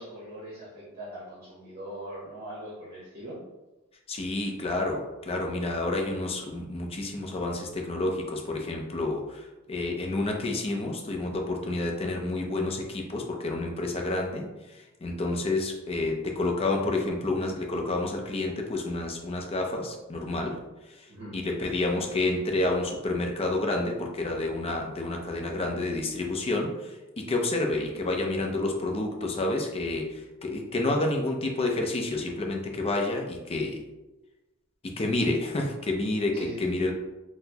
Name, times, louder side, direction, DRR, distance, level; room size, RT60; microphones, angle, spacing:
voice 1, 0.0-3.4 21.1-21.4 36.3-36.6, right 1 dB, 45° right, -6 dB, 0.8 m, -41 dB
voice 2, 4.1-20.6 20.9-33.8 34.8-36.9, left 2 dB, 30° left, 2 dB, 0.4 m, -29 dB
4.0 x 2.0 x 2.7 m, 1.1 s
head